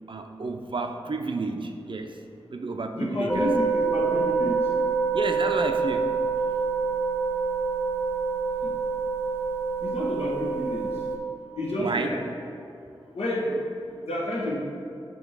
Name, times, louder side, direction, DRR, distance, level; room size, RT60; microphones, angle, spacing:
voice 1, 0.1-2.2 2.5-3.5 5.1-6.2 11.8-12.2, right 3 dB, 55° right, 6 dB, 0.5 m, -31 dB
voice 2, 2.9-4.8 8.6-8.7 9.8-10.9 11.6-12.2 13.1-13.8 14.1-14.6, left 1 dB, 85° left, -4 dB, 1.1 m, -29 dB
sound 1, 3.3-11.2, right 4 dB, 20° left, 0.9 m, -26 dB
7.2 x 3.0 x 4.8 m, 2.6 s
cardioid pair, 50°, 10 cm